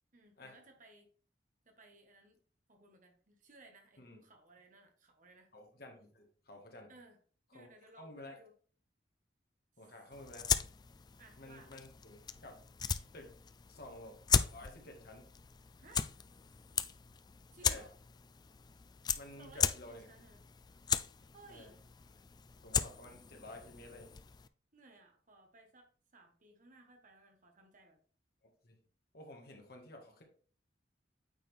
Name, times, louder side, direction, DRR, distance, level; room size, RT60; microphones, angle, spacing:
voice 1, 0.1-1.1 1.6-2.4 2.7-5.5 6.9-7.2 7.5-8.5 11.2-11.8 15.8-16.1 17.5-17.9 19.4-19.7 20.1-20.4 21.3-21.8 24.7-28.0, right 2 dB, 45° right, 3 dB, 1.5 m, -60 dB
voice 2, 5.5-6.9 7.5-7.7 8.0-8.3 9.8-10.5 11.4-12.6 13.1-13.4 13.7-14.2 14.5-15.3 17.6-17.9 19.1-20.1 21.5-21.7 22.6-24.2 28.6-28.8 29.1-30.2, left 1 dB, 60° left, 2 dB, 1.8 m, -52 dB
sound 1, 10.1-24.5, left 7 dB, 25° left, 0.3 m, -38 dB
8.9 x 4.3 x 3.5 m, 0.43 s
head